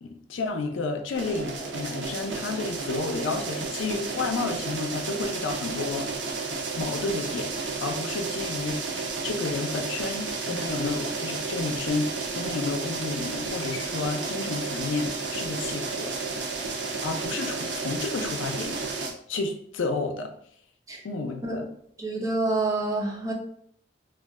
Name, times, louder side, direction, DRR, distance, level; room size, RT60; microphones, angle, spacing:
voice 1, 0.0-6.1 6.8-8.9 9.2-16.1 17.0-18.8 19.3-20.3 21.0-21.7, left 3 dB, 85° left, 4 dB, 0.4 m, -31 dB
sound 1, 1.1-19.1, right 4 dB, 70° right, 0.5 m, -32 dB
voice 2, 22.0-23.3, right 2 dB, 15° right, -1 dB, 0.5 m, -27 dB
2.4 x 2.2 x 3.5 m, 0.66 s
head